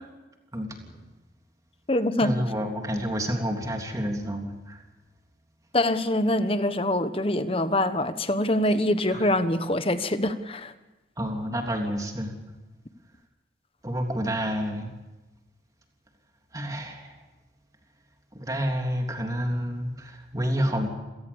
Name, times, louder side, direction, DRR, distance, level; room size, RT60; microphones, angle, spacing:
voice 1, 0.5-0.9 2.2-4.8 9.1-9.3 11.2-12.3 13.8-14.9 16.5-17.2 18.3-20.9, equal, 20° right, 3.3 m, -29 dB
voice 2, 1.9-2.3 5.7-10.7, left 1 dB, 30° left, 1.2 m, -24 dB
27.5 x 18.5 x 7.2 m
head